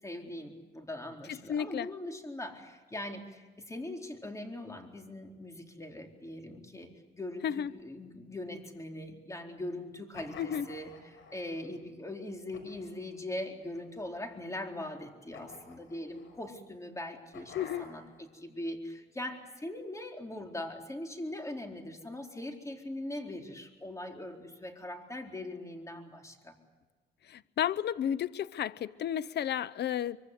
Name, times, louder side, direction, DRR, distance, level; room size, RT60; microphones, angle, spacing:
voice 1, 0.0-26.6, left 1 dB, 15° left, 4.2 m, -41 dB
voice 2, 1.3-1.9 7.4-7.7 10.4-10.6 17.5-17.9 27.3-30.2, left 9 dB, 60° left, 0.8 m, -32 dB
sound 1, 10.1-11.7 12.5-13.1 13.7-14.5 15.3-16.5 17.3-18.2, left 5 dB, 75° left, 6.2 m, -51 dB
24.5 x 24.0 x 8.1 m
cardioid pair, 90°, 20 cm